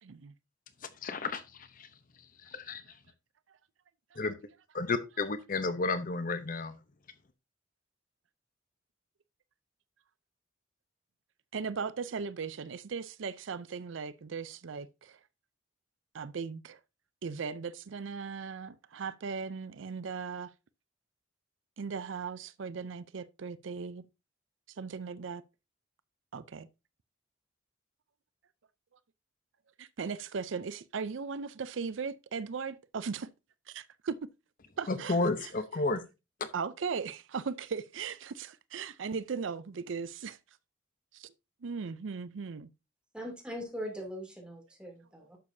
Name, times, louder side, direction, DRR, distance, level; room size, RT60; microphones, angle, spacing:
voice 1, 0.0-0.3 4.1-4.2 11.5-15.2 16.1-16.8 17.2-20.5 21.8-24.1 24.7-25.4 26.3-26.7 29.8-33.3 33.7-34.2 34.8-35.5 36.5-40.4 41.1-41.3 41.6-42.7, right 5 dB, 75° right, 0.5 m, -38 dB
voice 2, 1.0-1.9 2.4-2.8 4.2-4.4 4.7-6.7 34.9-36.0 36.4-36.5, left 3 dB, 45° left, 0.7 m, -32 dB
voice 3, 43.1-45.4, equal, 5° right, 2.8 m, -41 dB
11.0 x 7.1 x 2.7 m
head